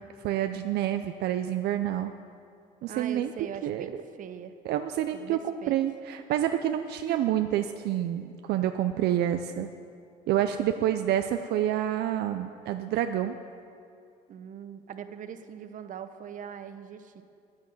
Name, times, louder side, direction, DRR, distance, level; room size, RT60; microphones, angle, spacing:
voice 1, 0.2-2.1 2.8-3.3 3.6-3.9 4.6-9.7 10.3-13.4, right 11 dB, 75° right, 8 dB, 0.5 m, -28 dB
voice 2, 2.9-4.5 5.1-5.8 7.1-7.2 14.3-17.2, right 8 dB, 50° right, 9 dB, 0.8 m, -41 dB
9.8 x 9.6 x 7.7 m, 2.4 s
cardioid pair, 110°, 17 cm